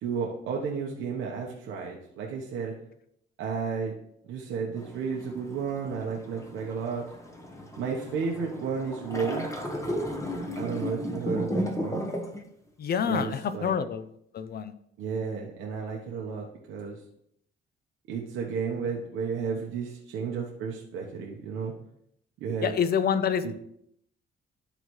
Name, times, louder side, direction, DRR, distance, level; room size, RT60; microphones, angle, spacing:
voice 1, 0.0-2.7 3.4-3.9 4.2-7.0 7.8-9.6 10.5-12.0 13.1-13.7 15.0-17.0 18.1-21.7 22.4-22.8 23.4-23.5, right 5 dB, 90° right, -2 dB, 1.1 m, -32 dB
sound 1, 4.8-12.4, equal, 15° left, 1.1 m, -34 dB
voice 2, 12.8-14.1 14.3-14.7 22.6-23.5, left 7 dB, 50° left, 12 dB, 0.6 m, -27 dB
11.5 x 4.0 x 3.1 m, 0.73 s
cardioid pair, 90°, 20 cm